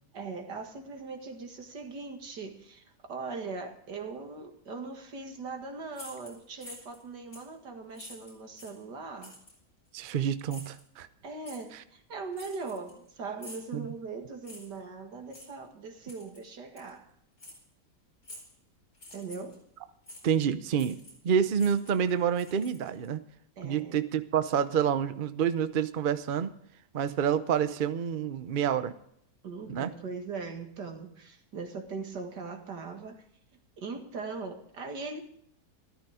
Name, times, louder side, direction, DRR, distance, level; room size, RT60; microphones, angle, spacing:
voice 1, 0.1-9.4 11.2-17.1 19.1-19.6 23.6-24.0 29.4-33.2 33.8-35.2, right 4 dB, 85° right, 5 dB, 2.5 m, -40 dB
sound 1, 5.9-7.0 7.3-7.5 7.9-8.8 9.2-9.6 10.5-10.8 11.4-11.6 12.3-13.1 13.4-13.7 14.4-14.8 15.3-15.5 16.1-16.4 16.8-16.9 17.4-17.6 18.2-18.6 18.9-19.6 20.1-20.2 20.7-21.3 21.5-23.1, left 1 dB, 60° left, 5.1 m, -48 dB
voice 2, 9.9-11.1 13.7-13.9 20.2-21.0 21.2-23.2 23.6-26.5 26.9-28.9 29.7-29.9, right 8 dB, 45° right, 12 dB, 0.7 m, -28 dB
13.5 x 13.5 x 4.9 m, 0.72 s
omnidirectional pair, 1.8 m